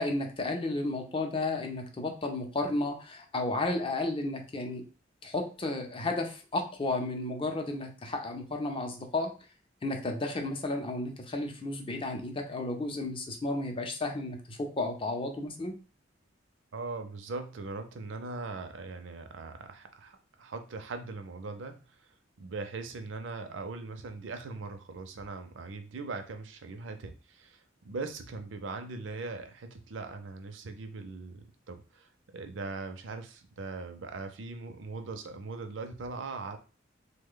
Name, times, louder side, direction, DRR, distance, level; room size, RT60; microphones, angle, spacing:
voice 1, 0.0-4.8 5.2-9.3 9.8-15.7, left 2 dB, 30° left, 3 dB, 0.5 m, -33 dB
voice 2, 16.7-22.1 22.4-36.6, right 3 dB, 80° right, 7 dB, 0.5 m, -40 dB
3.2 x 2.2 x 3.7 m, 0.35 s
head